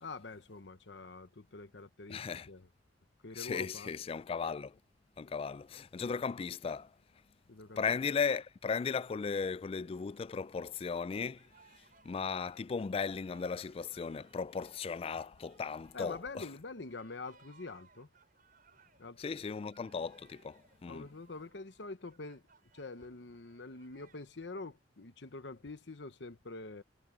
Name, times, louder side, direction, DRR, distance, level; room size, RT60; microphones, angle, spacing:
voice 1, 0.0-2.7 3.2-3.9 7.5-7.8 15.9-18.1 19.0-19.3 20.9-22.4 22.7-26.8, left 3 dB, 70° left, 1.0 m, -46 dB
voice 2, 2.1-2.5 3.3-4.8 5.2-7.0 7.8-16.5 19.2-21.1, left 5 dB, 30° left, 0.3 m, -36 dB
sound 1, 7.6-10.8 11.1-24.3, right 5 dB, 50° right, 7.4 m, -66 dB
head